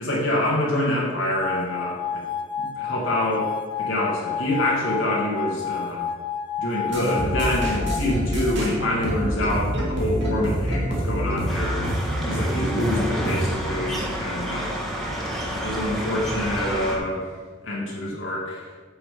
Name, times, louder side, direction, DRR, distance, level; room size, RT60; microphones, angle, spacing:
voice 1, 0.0-2.2 2.6-3.5 3.8-6.1 6.6-11.9 12.2-14.8 15.5-17.3 17.6-18.7, left 1 dB, 75° left, -4 dB, 1.9 m, -26 dB
sound 1, 1.4-8.0, left 7 dB, 25° left, 0.4 m, -30 dB
sound 2, 6.9-13.5, equal, 65° right, 2.4 m, -26 dB
sound 3, 11.5-17.0, equal, ahead, 1.6 m, -30 dB
8.8 x 6.4 x 5.0 m, 1.4 s
head